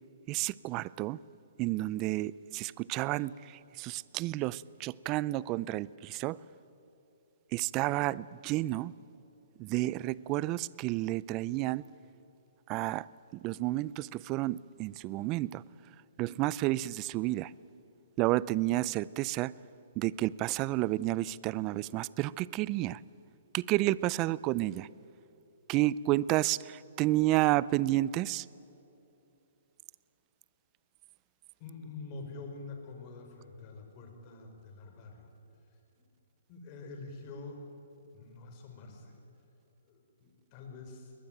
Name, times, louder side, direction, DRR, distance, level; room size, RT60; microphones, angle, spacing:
voice 1, 0.3-1.2 1.6-6.4 7.5-8.9 9.6-11.9 12.7-13.1 13.4-15.6 16.2-17.5 18.2-19.5 20.0-23.0 23.5-24.9 25.7-28.5, right 17 dB, 30° right, 0.5 m, -31 dB
voice 2, 31.6-35.3 35.7-36.0 36.5-37.6 38.1-39.2 39.8-41.1, left 3 dB, 35° left, 5.2 m, -46 dB
22.0 x 19.5 x 9.2 m
hypercardioid pair, 140°, 0 cm